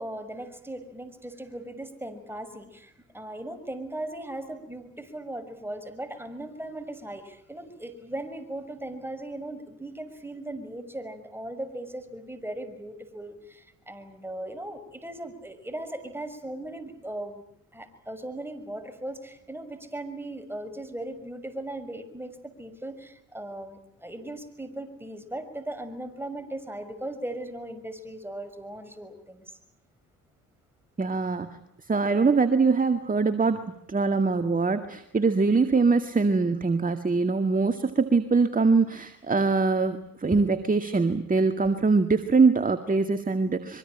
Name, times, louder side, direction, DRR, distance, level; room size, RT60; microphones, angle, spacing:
voice 1, 0.0-17.4 17.7-29.6 40.3-40.4, right 1 dB, 5° right, 8 dB, 6.1 m, -38 dB
voice 2, 31.0-31.5 31.9-33.6 33.9-43.8, right 4 dB, 25° right, 8 dB, 2.0 m, -23 dB
24.5 x 24.0 x 9.0 m, 0.70 s
supercardioid pair, 60°, 32 cm